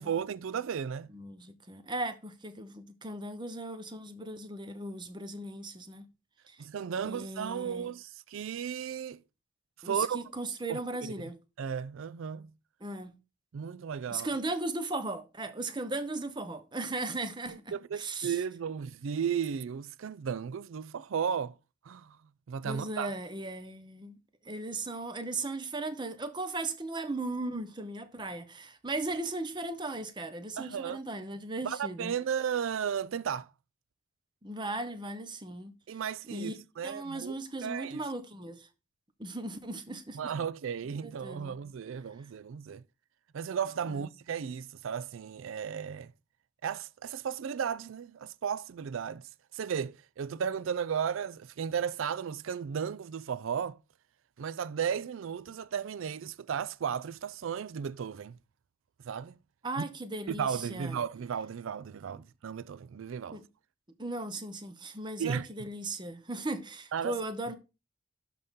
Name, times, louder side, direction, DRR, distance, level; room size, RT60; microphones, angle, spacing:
voice 1, 0.0-1.1 6.6-9.2 9.8-10.2 10.7-10.8 11.6-12.5 13.5-14.3 17.5-21.5 21.9-22.2 22.5-23.1 30.6-31.0 31.6-33.5 35.9-38.0 40.1-42.8 43.3-46.1 46.6-49.2 49.5-53.8 54.4-58.4 59.0-59.4 59.8-59.9 60.3-63.4 65.2-65.5 66.9-67.2, right 7 dB, 70° right, 0.4 m, -34 dB
voice 2, 1.1-6.1 6.5-6.6 7.0-7.9 9.8-11.4 12.8-13.1 14.1-17.6 17.9-18.4 22.6-24.2 24.4-32.1 34.4-36.0 36.3-36.5 36.8-38.7 39.2-40.3 41.0-41.6 43.9-44.1 59.6-61.0 63.3-63.4 64.0-67.5, right 2 dB, 20° right, 0.8 m, -37 dB
12.0 x 4.2 x 3.7 m
head